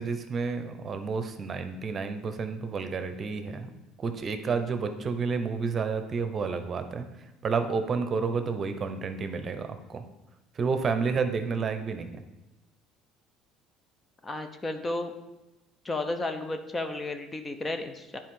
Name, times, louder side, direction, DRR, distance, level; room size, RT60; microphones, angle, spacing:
voice 1, 0.0-3.7 4.0-7.1 7.4-10.0 10.6-12.2, right 5 dB, 40° right, 8 dB, 0.8 m, -30 dB
voice 2, 14.2-15.1 15.8-18.2, left 2 dB, 25° left, 7 dB, 0.8 m, -33 dB
10.0 x 4.5 x 3.8 m, 1.0 s
hypercardioid pair, 75°, 0 cm